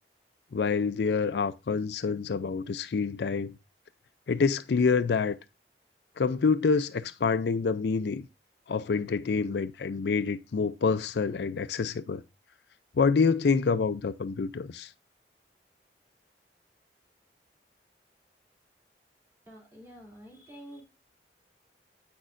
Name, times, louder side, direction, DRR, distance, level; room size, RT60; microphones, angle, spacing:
voice 1, 0.5-3.5 4.3-5.4 6.2-8.2 8.7-12.2 13.0-14.9, left 5 dB, 70° left, 0.4 m, -27 dB
voice 2, 19.5-20.8, equal, 15° right, 2.9 m, -48 dB
8.4 x 6.2 x 2.5 m
head